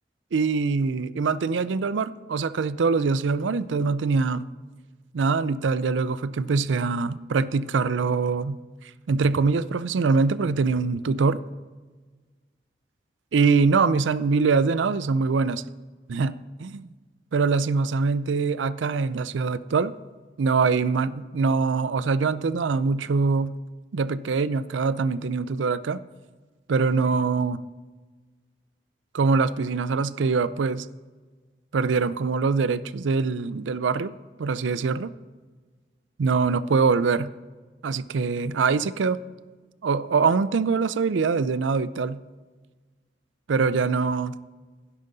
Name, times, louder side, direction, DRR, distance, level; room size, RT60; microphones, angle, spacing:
voice 1, 0.3-4.5 5.1-8.6 9.1-11.4 13.3-15.6 16.1-16.3 16.6-16.9 17.3-19.9 20.4-23.6 23.9-26.0 26.7-27.6 29.1-30.9 31.7-34.1 34.4-35.1 36.2-37.3 37.8-39.2 39.8-42.2 43.5-44.4, right 4 dB, 90° right, 15 dB, 0.4 m, -23 dB
12.0 x 10.5 x 4.0 m, 1.4 s
head